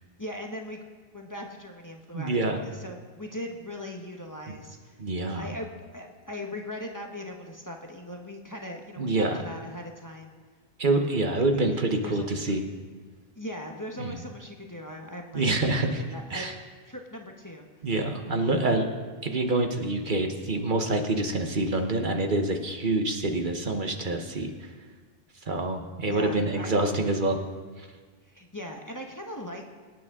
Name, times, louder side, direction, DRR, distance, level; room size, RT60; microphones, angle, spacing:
voice 1, 0.2-0.8 1.1-5.0 5.3-10.4 11.3-11.4 11.9-12.5 13.3-16.5 16.9-17.8 18.4-18.6 26.1-26.7 28.2-29.6, left 1 dB, 20° left, 1 dB, 1.0 m, -39 dB
voice 2, 2.1-2.6 5.0-5.5 9.0-9.4 10.8-12.6 14.0-14.2 15.3-16.0 16.3-16.5 17.8-18.9 19.2-24.7 25.4-27.4 27.8-27.9, right 2 dB, 55° right, 4 dB, 1.2 m, -26 dB
24.5 x 9.3 x 3.7 m, 1.5 s
omnidirectional pair, 1.0 m